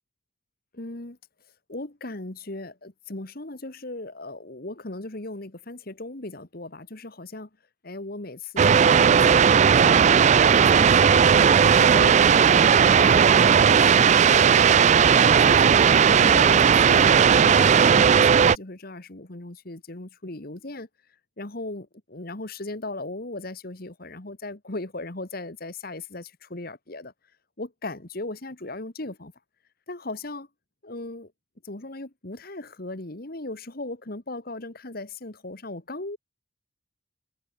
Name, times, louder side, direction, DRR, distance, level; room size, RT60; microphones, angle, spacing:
voice 1, 0.7-1.2 1.7-7.5 7.8-15.8 16.2-20.9 21.4-27.1 27.6-29.3 29.9-30.5 30.8-31.3 31.6-36.2, left 2 dB, 45° left, 1.7 m, -37 dB
sound 1, 8.6-18.6, right 7 dB, 35° right, 0.3 m, -16 dB
head